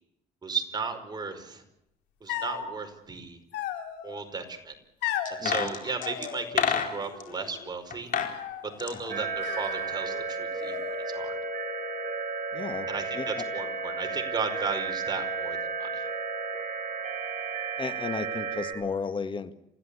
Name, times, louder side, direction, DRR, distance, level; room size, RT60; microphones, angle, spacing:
voice 1, 0.4-1.6 2.2-3.4 4.0-4.7 5.3-8.1 8.8-10.8 11.1-11.4 12.9-16.1, right 4 dB, 25° right, 5 dB, 5.1 m, -35 dB
sound 1, 2.3-2.7 3.5-4.2 5.0-5.4 6.0-6.9 7.1-7.7 8.1-8.7 9.4-10.3 10.6-11.3, left 10 dB, 90° left, 3.5 m, -36 dB
sound 2, 5.3-7.3 7.9-8.4 8.6-10.0 10.3-10.4, left 7 dB, 55° left, 4.4 m, -30 dB
voice 2, 5.4-5.7 9.1-9.2 12.5-12.9 13.2-13.4 17.8-19.5, left 5 dB, 30° left, 10 dB, 1.9 m, -34 dB
sound 3, 9.1-18.7, right 4 dB, 50° right, 7.1 m, -33 dB
29.5 x 16.0 x 8.5 m, 0.81 s
cardioid pair, 110°, 17 cm